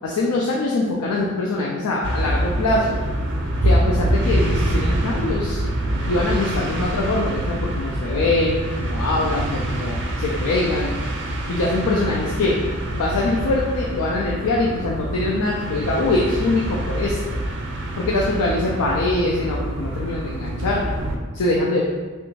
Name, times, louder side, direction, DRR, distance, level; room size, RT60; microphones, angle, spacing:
voice 1, 0.0-3.1 3.6-5.7 6.1-10.9 11.5-12.6 12.9-17.4 18.0-20.9 21.3-21.8, left 2 dB, 75° left, -3 dB, 0.4 m, -23 dB
sound 1, 2.0-21.2, right 1 dB, 55° right, 0.4 m, -25 dB
3.3 x 2.5 x 3.1 m, 1.3 s
head